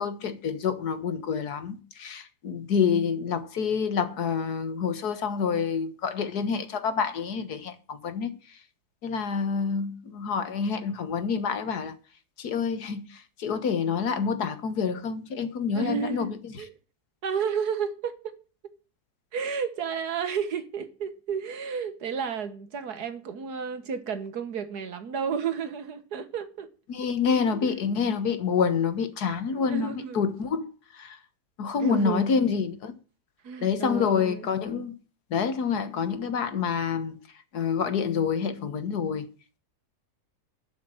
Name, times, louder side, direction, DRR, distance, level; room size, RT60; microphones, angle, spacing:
voice 1, 0.0-8.3 9.0-11.9 12.4-16.4 26.9-30.7 30.9-31.2 31.6-32.9 33.6-34.9 35.3-37.2 37.5-39.3, left 6 dB, 75° left, 1.8 m, -27 dB
voice 2, 15.7-16.7 17.2-18.3 19.3-26.7 27.6-27.7 29.7-30.2 31.8-32.3 33.4-34.5, right 6 dB, 75° right, 1.8 m, -32 dB
12.0 x 5.9 x 8.8 m
omnidirectional pair, 1.7 m